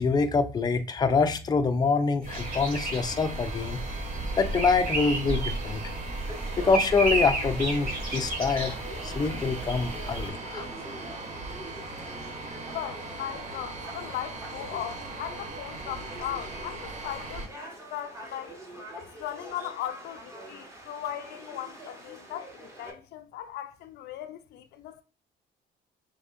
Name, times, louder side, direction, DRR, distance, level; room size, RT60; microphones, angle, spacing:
voice 1, 0.0-3.8 4.4-5.9 6.6-8.8 9.0-10.7, left 4 dB, 25° left, 0.5 m, -25 dB
sound 1, 2.2-10.3, right 2 dB, 60° right, 2.3 m, -33 dB
sound 2, 2.3-17.5, right 2 dB, 45° right, 1.0 m, -38 dB
Conversation / Crowd, 6.3-22.9, right 1 dB, 15° right, 1.2 m, -45 dB
voice 2, 12.7-18.6 18.9-25.0, left 11 dB, 75° left, 0.5 m, -38 dB
5.3 x 3.4 x 2.5 m
cardioid pair, 110°, 17 cm